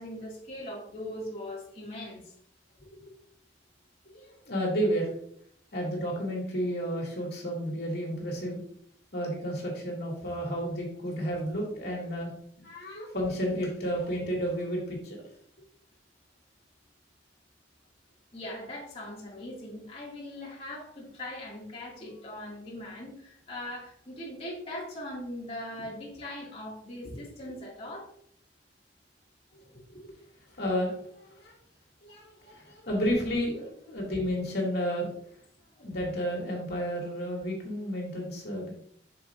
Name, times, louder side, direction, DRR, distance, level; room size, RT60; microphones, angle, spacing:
voice 1, 0.0-2.2 18.3-28.1, left 1 dB, 35° left, -5 dB, 2.1 m, -40 dB
voice 2, 4.1-5.1 5.7-8.6 9.1-12.3 12.6-15.2 29.9-30.1 30.5-31.5 32.0-35.1 35.8-38.7, equal, 65° left, -2 dB, 2.3 m, -32 dB
7.6 x 6.2 x 2.5 m, 0.64 s
head